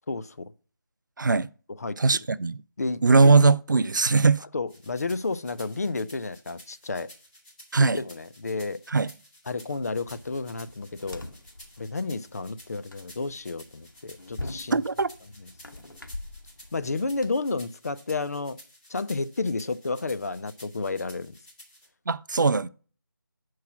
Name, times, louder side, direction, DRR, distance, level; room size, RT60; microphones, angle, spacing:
voice 1, 0.1-0.5 1.7-2.0 2.8-3.0 4.2-7.1 7.8-8.8 9.5-11.2 11.8-14.8 15.4-15.5 16.7-18.6 18.9-21.3, left 3 dB, 45° left, 0.5 m, -31 dB
voice 2, 1.2-1.5 2.0-2.6 3.0-4.4 7.7-8.0 8.9-9.1 14.7-15.1 22.1-22.7, right 4 dB, 65° right, 0.4 m, -20 dB
sound 1, 4.7-21.9, left 1 dB, 20° left, 3.0 m, -52 dB
sound 2, 10.0-17.3, left 2 dB, 70° left, 1.2 m, -43 dB
6.9 x 4.7 x 5.8 m
figure-of-eight pair, 165°, 11 cm